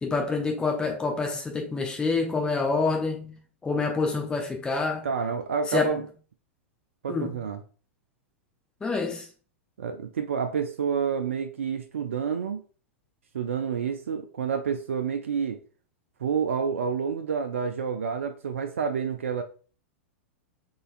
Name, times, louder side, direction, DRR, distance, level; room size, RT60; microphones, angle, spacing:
voice 1, 0.0-3.4 3.6-5.1 5.7-5.9 7.1-7.3 8.8-9.3, left 4 dB, 10° left, 0.8 m, -27 dB
voice 2, 5.0-6.0 7.0-7.6 9.8-12.6 13.3-15.6 16.2-19.4, right 6 dB, 75° right, 0.4 m, -29 dB
3.9 x 3.8 x 2.5 m
figure-of-eight pair, 100°, 7 cm